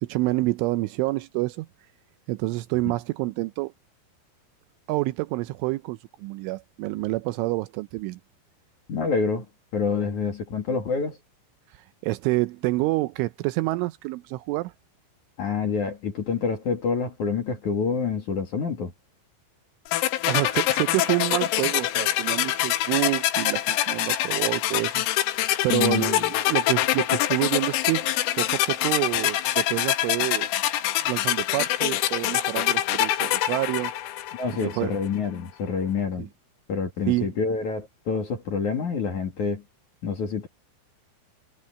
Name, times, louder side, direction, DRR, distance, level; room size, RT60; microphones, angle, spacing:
voice 1, 0.0-1.7 2.3-3.7 4.9-8.2 12.0-14.7 20.3-28.1 28.4-30.5 31.1-33.9 34.6-34.9 36.2-36.3 37.1-37.3, right 20 dB, 80° right, 3.0 m, -27 dB
voice 2, 8.9-9.5 9.7-11.2 15.4-18.9 25.7-26.3 34.3-36.3 36.7-39.6 40.0-40.5, left 5 dB, 50° left, 2.8 m, -27 dB
sound 1, 19.9-34.8, left 14 dB, 75° left, 3.7 m, -25 dB
omnidirectional pair, 5.8 m